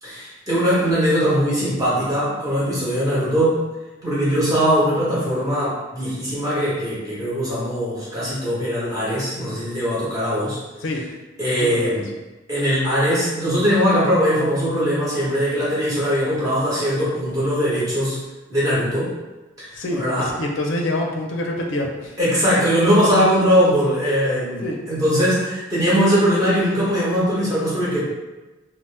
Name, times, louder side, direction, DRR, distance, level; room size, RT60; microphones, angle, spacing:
voice 1, 0.0-3.6 4.0-10.6 11.4-12.0 12.5-18.2 18.5-19.1 19.6-20.3 22.2-28.0, equal, 20° right, -9 dB, 1.1 m, -20 dB
voice 2, 11.7-12.0 19.7-22.2 24.6-24.8, left 1 dB, 75° left, 1 dB, 0.4 m, -26 dB
2.7 x 2.0 x 3.3 m, 1.1 s
head